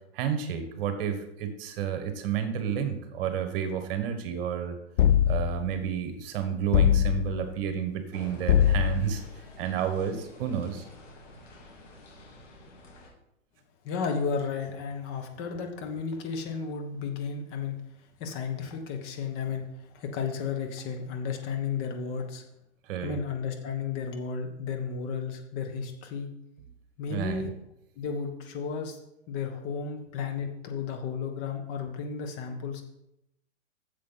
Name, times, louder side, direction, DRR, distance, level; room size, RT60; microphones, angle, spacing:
voice 1, 0.1-4.8 5.3-9.2 9.6-10.8 22.9-23.2 27.1-27.4, right 8 dB, 50° right, 8 dB, 1.5 m, -31 dB
sound 1, 5.0-5.7 6.7-7.5 8.5-9.2, left 10 dB, 60° left, 0.5 m, -22 dB
sound 2, 8.1-13.1, left 1 dB, 85° left, 3.2 m, -49 dB
voice 2, 13.8-17.8 18.2-19.7 19.9-22.4 23.0-26.3 27.0-27.5 28.0-29.0 29.3-32.8, left 5 dB, 35° left, 4 dB, 1.5 m, -33 dB
8.5 x 7.4 x 4.1 m, 0.82 s
hypercardioid pair, 120°, 37 cm